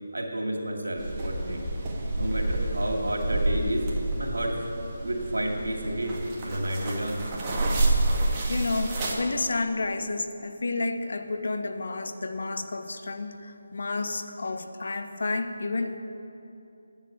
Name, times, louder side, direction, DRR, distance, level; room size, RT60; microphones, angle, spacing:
voice 1, 0.1-1.7 2.1-3.9 4.2-4.6 5.0-6.2 6.4-7.2, right 1 dB, 90° right, -1 dB, 2.5 m, -30 dB
sound 1, 1.0-9.2, right 2 dB, 20° right, 1.7 m, -29 dB
voice 2, 8.5-16.0, left 3 dB, 65° left, 8 dB, 0.9 m, -30 dB
10.0 x 7.3 x 9.0 m, 2.9 s
figure-of-eight pair, 160°, 0 cm